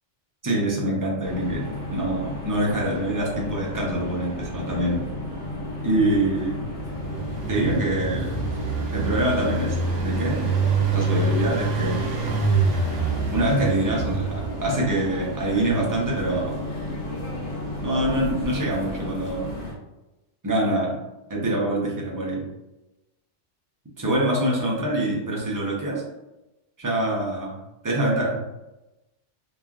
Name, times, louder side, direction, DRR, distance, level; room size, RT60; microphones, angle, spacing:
voice 1, 0.4-5.0 5.8-6.6 7.5-8.3 8.9-9.8 10.0-10.5 10.9-12.2 13.3-16.6 17.8-19.5 20.4-21.0 21.3-22.4 24.0-26.0 26.8-27.6 27.8-28.4, right 1 dB, 30° right, -4 dB, 0.4 m, -25 dB
sound 1, 1.2-19.7, left 1 dB, 55° left, 1.4 m, -33 dB
Engine, 6.7-14.8, right 4 dB, 75° right, 0.9 m, -26 dB
3.0 x 2.3 x 2.3 m, 0.99 s
omnidirectional pair, 1.3 m